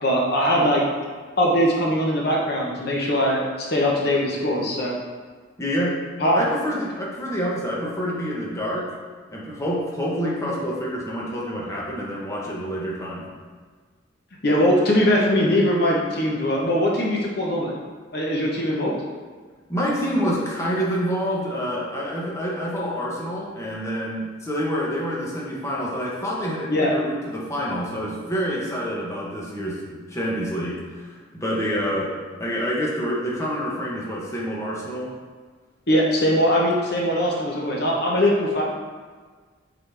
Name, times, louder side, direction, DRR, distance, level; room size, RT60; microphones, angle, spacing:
voice 1, 0.0-0.8 1.4-4.9 6.2-6.4 14.4-17.7 18.1-19.0 26.7-26.9 35.9-38.6, equal, 55° left, -2 dB, 1.0 m, -21 dB
voice 2, 5.6-6.0 6.3-8.9 9.3-13.3 19.7-35.1, equal, 15° left, -5 dB, 1.1 m, -27 dB
8.6 x 4.0 x 3.4 m, 1.5 s
head